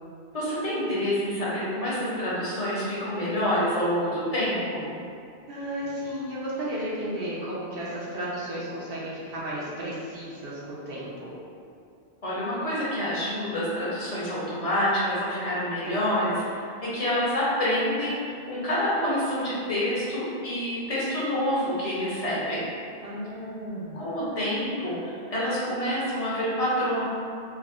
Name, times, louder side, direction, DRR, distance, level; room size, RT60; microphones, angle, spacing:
voice 1, 0.3-5.0 12.2-22.7 23.9-27.0, equal, 40° left, -8 dB, 0.6 m, -27 dB
voice 2, 5.5-11.3 23.0-24.0, equal, 65° right, -7 dB, 0.8 m, -33 dB
3.4 x 2.0 x 2.4 m, 2.4 s
omnidirectional pair, 1.1 m